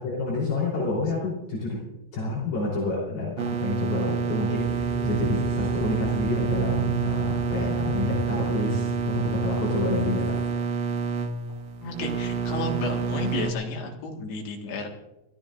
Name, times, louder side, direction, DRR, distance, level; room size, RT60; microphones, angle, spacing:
voice 1, 0.0-1.8 2.1-10.6, left 3 dB, 60° left, -5 dB, 5.6 m, -29 dB
sound 1, 3.4-13.5, right 5 dB, 80° right, 1.5 m, -28 dB
sound 2, 4.5-10.5, right 5 dB, 40° right, 3.7 m, -34 dB
voice 2, 11.8-14.9, left 3 dB, 80° left, 1 dB, 4.0 m, -32 dB
29.0 x 14.5 x 2.6 m, 0.95 s
omnidirectional pair, 4.8 m